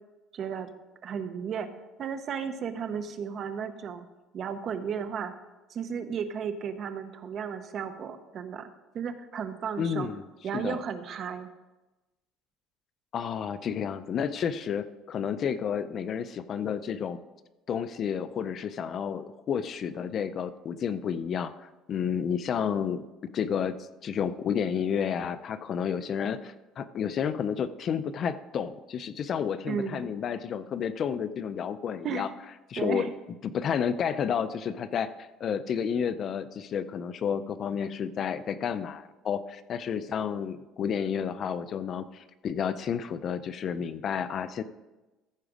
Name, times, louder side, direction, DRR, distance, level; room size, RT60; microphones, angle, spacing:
voice 1, 0.3-0.7 1.0-1.7 2.0-4.1 4.3-5.3 5.7-8.7 8.9-10.1 10.4-11.5 29.7-30.1 32.0-32.3 32.8-33.1, right 7 dB, 40° right, 10 dB, 0.7 m, -34 dB
voice 2, 9.8-10.2 10.5-10.8 13.1-17.2 17.7-23.0 23.3-23.7 24.0-32.3 32.7-33.1 33.4-44.6, left 7 dB, 40° left, 13 dB, 0.4 m, -31 dB
14.5 x 5.0 x 5.0 m, 1.1 s
cardioid pair, 150°, 0 cm